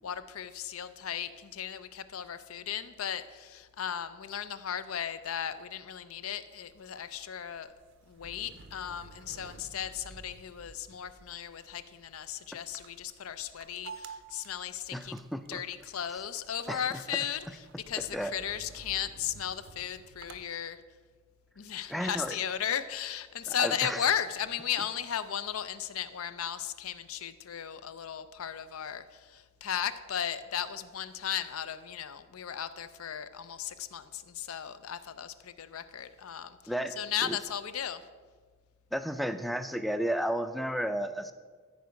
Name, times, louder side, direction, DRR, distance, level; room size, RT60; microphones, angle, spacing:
voice 1, 0.0-7.7 8.1-15.1 15.5-17.5 17.9-20.8 21.6-36.6 37.0-38.0, left 9 dB, 75° left, 13 dB, 0.5 m, -36 dB
sound 1, 6.7-20.4, right 4 dB, 60° right, 0.6 m, -52 dB
voice 2, 14.9-15.6 16.7-17.0 18.1-18.3 21.9-22.3 23.5-24.0 36.7-37.0 37.2-37.4 38.9-41.3, equal, ahead, 10 dB, 0.4 m, -33 dB
13.5 x 4.8 x 5.2 m, 1.5 s
head